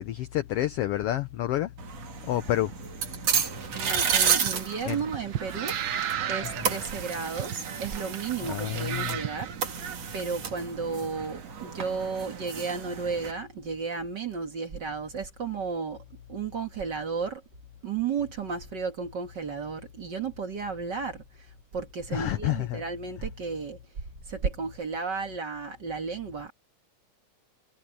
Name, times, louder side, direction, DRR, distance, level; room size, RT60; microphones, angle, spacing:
voice 1, 0.0-1.7 2.2-2.7 4.9-5.0 8.5-9.2 22.1-22.8, left 14 dB, 80° left, 1.4 m, -29 dB
sound 1, 1.8-13.3, right 7 dB, 55° right, 3.3 m, -32 dB
voice 2, 3.7-5.7 6.2-9.7 10.1-17.4 17.8-23.8 24.3-26.5, right 5 dB, 40° right, 1.9 m, -33 dB
sound 2, 3.9-10.2, right 10 dB, 80° right, 1.0 m, -35 dB
omnidirectional pair, 3.5 m